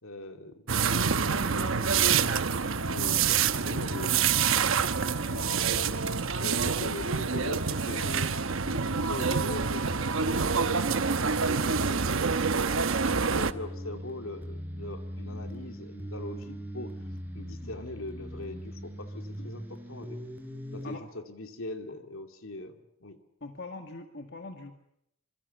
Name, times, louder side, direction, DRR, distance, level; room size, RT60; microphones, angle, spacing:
voice 1, 0.0-2.4 2.9-4.4 5.2-5.9 6.4-8.1 8.6-9.9 10.2-12.9 13.2-16.9 17.3-20.2 20.7-23.2, left 2 dB, 70° left, 6 dB, 2.6 m, -41 dB
sound 1, 0.7-13.5, right 5 dB, 65° right, 1.0 m, -27 dB
sound 2, 3.6-6.2, equal, 30° right, 4.3 m, -50 dB
voice 2, 7.9-8.3 15.3-15.4 16.1-16.2 17.6-17.7 19.4-19.5 20.8-21.0 23.4-24.7, left 2 dB, 55° left, 5 dB, 2.0 m, -43 dB
sound 3, 13.1-21.0, equal, 10° right, 4.3 m, -40 dB
26.5 x 25.0 x 7.2 m, 0.76 s
head